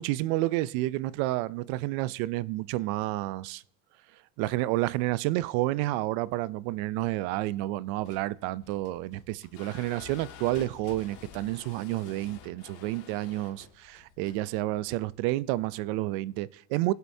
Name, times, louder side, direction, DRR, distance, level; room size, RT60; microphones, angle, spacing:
voice 1, 0.0-3.6 4.4-16.9, right 17 dB, 80° right, 0.5 m, -30 dB
sound 1, 7.9-15.8, left 9 dB, 65° left, 1.8 m, -50 dB
21.0 x 8.1 x 2.7 m
cardioid pair, 170°, 39 cm